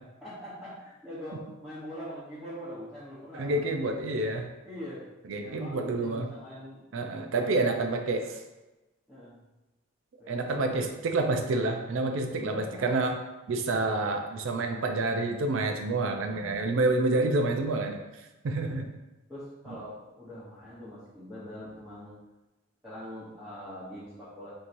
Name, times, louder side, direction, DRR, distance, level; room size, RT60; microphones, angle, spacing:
voice 1, 0.2-3.9 4.6-5.0 5.4-6.9 7.3-7.5 7.8-8.1 9.1-9.4 10.2-10.9 12.4-13.0 18.5-18.7 19.3-22.2 22.8-24.5, equal, 5° right, -13 dB, 0.9 m, -43 dB
voice 2, 3.3-4.5 5.3-6.3 6.9-8.3 10.3-13.2 13.5-18.0 18.4-18.9, right 2 dB, 65° right, 4 dB, 0.4 m, -28 dB
4.5 x 2.7 x 2.6 m, 1.0 s
head